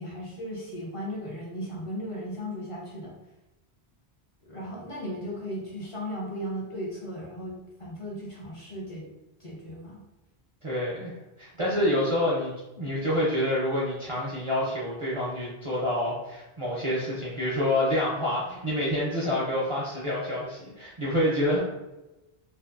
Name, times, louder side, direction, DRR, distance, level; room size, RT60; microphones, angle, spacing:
voice 1, 0.0-3.2 4.4-9.1 9.4-10.0, equal, 40° left, -4 dB, 0.5 m, -36 dB
voice 2, 10.6-21.6, left 1 dB, 45° right, -6 dB, 0.4 m, -27 dB
2.5 x 2.4 x 2.4 m, 0.99 s
omnidirectional pair, 1.1 m